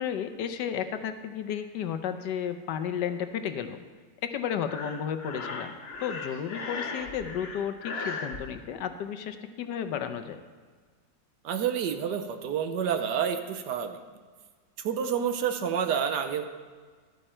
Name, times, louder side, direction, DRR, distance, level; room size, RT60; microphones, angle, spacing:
voice 1, 0.0-3.8 4.2-10.4, left 8 dB, 75° left, 9 dB, 1.3 m, -33 dB
Breathing, 4.6-8.4, left 4 dB, 45° left, 1.0 m, -37 dB
voice 2, 11.4-14.0 14.8-16.4, right 8 dB, 70° right, 8 dB, 1.3 m, -29 dB
12.5 x 9.3 x 4.3 m, 1.5 s
omnidirectional pair, 2.0 m